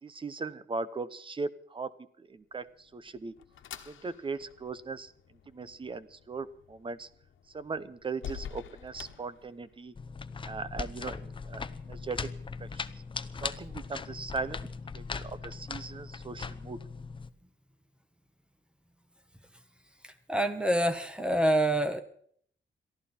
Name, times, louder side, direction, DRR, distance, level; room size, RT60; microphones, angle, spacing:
voice 1, 0.0-1.9 2.2-3.3 3.9-5.1 5.5-7.1 7.5-9.9 10.4-12.3 12.6-12.8 13.4-14.7 14.9-16.8, right 4 dB, 25° right, 15 dB, 0.8 m, -38 dB
sound 1, 2.6-10.0, left 9 dB, 90° left, 1.3 m, -48 dB
sound 2, 9.9-17.3, left 4 dB, 25° left, 0.7 m, -39 dB
voice 2, 20.3-22.0, right 1 dB, 5° right, 9 dB, 1.3 m, -26 dB
22.5 x 14.5 x 4.4 m, 0.63 s
wide cardioid pair, 145°, 20 cm